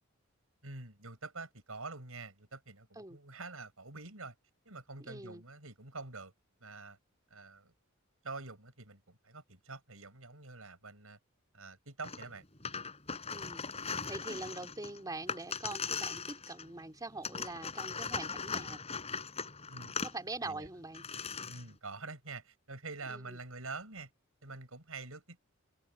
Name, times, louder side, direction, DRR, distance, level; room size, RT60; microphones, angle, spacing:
voice 1, 0.6-4.4 4.7-6.3 6.6-7.0 7.3-7.7 8.2-11.2 11.5-12.4 19.7-20.0 20.4-20.7 21.4-24.1 24.4-25.4, right 3 dB, 80° right, 5.7 m, -46 dB
voice 2, 5.0-5.4 13.3-18.8 20.0-21.0 23.1-23.4, right 2 dB, 15° right, 3.1 m, -43 dB
sound 1, 12.0-12.3 12.6-16.8 17.2-20.1 20.6-20.7 20.9-21.7, left 5 dB, 30° left, 5.4 m, -39 dB
head